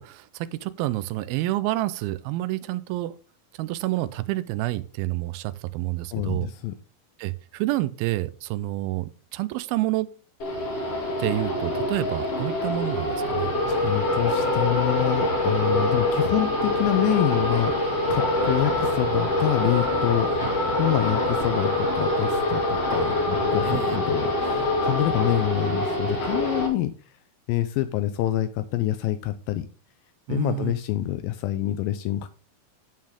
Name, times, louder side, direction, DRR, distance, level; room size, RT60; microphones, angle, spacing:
voice 1, 0.0-3.2 3.5-6.5 7.2-10.1 11.2-13.5 23.6-24.0 30.3-30.7, right 17 dB, 90° right, 15 dB, 2.5 m, -28 dB
voice 2, 6.1-6.7 13.7-20.3 20.8-26.9 27.5-29.7 30.3-32.3, left 14 dB, 80° left, 11 dB, 2.3 m, -26 dB
sound 1, 10.4-26.7, left 1 dB, 45° left, 3.1 m, -25 dB
11.0 x 7.4 x 3.7 m, 0.35 s
omnidirectional pair, 4.2 m